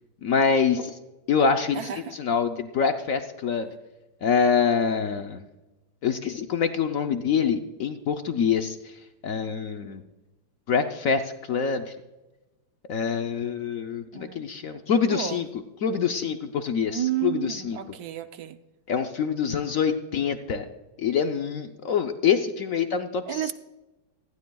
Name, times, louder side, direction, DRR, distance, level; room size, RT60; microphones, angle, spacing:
voice 1, 0.2-1.0 1.3-3.7 4.2-5.4 6.0-8.9 9.2-10.0 10.7-11.2 11.5-11.9 12.9-15.5 15.8-17.8 18.9-20.7 21.0-23.4, left 6 dB, 65° left, 6 dB, 0.8 m, -25 dB
voice 2, 1.7-2.2 14.1-14.4 15.1-15.4 16.9-18.6 23.3-23.5, right 12 dB, 70° right, 10 dB, 0.9 m, -31 dB
19.0 x 15.0 x 2.3 m, 1.1 s
omnidirectional pair, 2.2 m